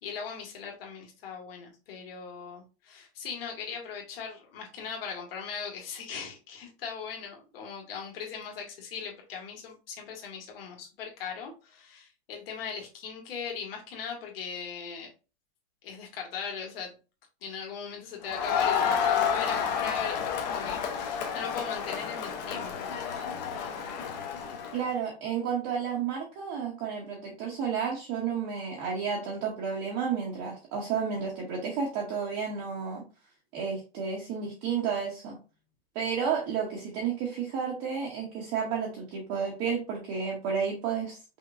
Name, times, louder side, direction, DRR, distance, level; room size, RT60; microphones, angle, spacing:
voice 1, 0.0-15.1 15.8-17.0 17.4-22.9, left 6 dB, 60° left, 0 dB, 2.0 m, -39 dB
Crowd, 18.2-24.8, left 7 dB, 40° left, 1.0 m, -30 dB
voice 2, 24.7-33.0 33.5-35.4 35.9-41.2, right 6 dB, 25° right, -1 dB, 0.8 m, -31 dB
5.5 x 3.5 x 2.6 m, 0.33 s
supercardioid pair, 175°, 33 cm